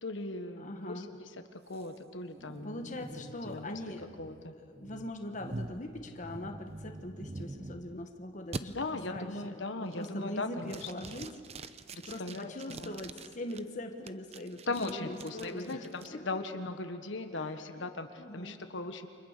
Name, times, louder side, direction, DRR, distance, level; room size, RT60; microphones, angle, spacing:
voice 1, 0.0-3.8 4.2-4.5 8.7-10.9 11.9-13.0 14.6-19.1, left 2 dB, 70° left, 7 dB, 1.4 m, -39 dB
voice 2, 0.6-1.1 2.6-4.1 4.6-11.3 12.0-16.2 17.4-17.9 18.2-18.6, left 1 dB, 40° left, 4 dB, 1.4 m, -42 dB
sound 1, 1.7-8.0 8.5-8.6 9.1-9.5 9.9-10.3 10.7-13.6 14.1-16.1, right 2 dB, 30° right, 0.7 m, -45 dB
29.5 x 25.5 x 6.7 m, 2.3 s
head